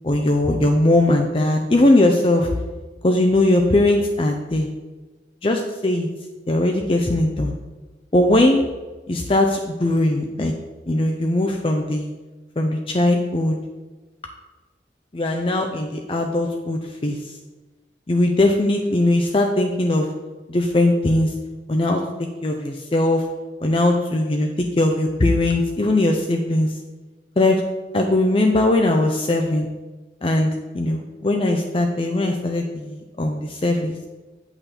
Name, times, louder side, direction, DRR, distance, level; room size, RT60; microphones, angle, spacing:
voice 1, 0.0-2.5 3.0-4.7 5.4-6.1 6.5-7.5 8.1-8.6 9.1-10.5 10.9-12.1 12.6-13.6 15.1-17.2 18.1-20.1 20.5-21.3 21.7-22.0 22.4-23.2 23.6-26.7 27.4-27.6 27.9-29.7 30.2-33.9, left 1 dB, 30° left, 3 dB, 0.5 m, -19 dB
8.3 x 5.7 x 4.2 m, 1.2 s
head